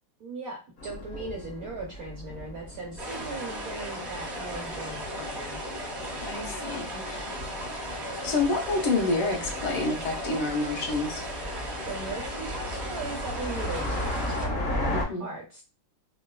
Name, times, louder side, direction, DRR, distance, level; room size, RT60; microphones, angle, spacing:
voice 1, 0.2-5.6 11.9-15.6, right 3 dB, 70° right, -3 dB, 0.8 m, -38 dB
sound 1, 0.8-15.0, left 1 dB, 50° left, 0.7 m, -37 dB
sound 2, 3.0-14.5, equal, 45° right, 0.9 m, -36 dB
voice 2, 6.2-7.4 8.0-11.2 14.9-15.3, left 3 dB, 80° left, 0 dB, 1.8 m, -29 dB
4.1 x 2.2 x 2.2 m, 0.31 s
omnidirectional pair, 2.3 m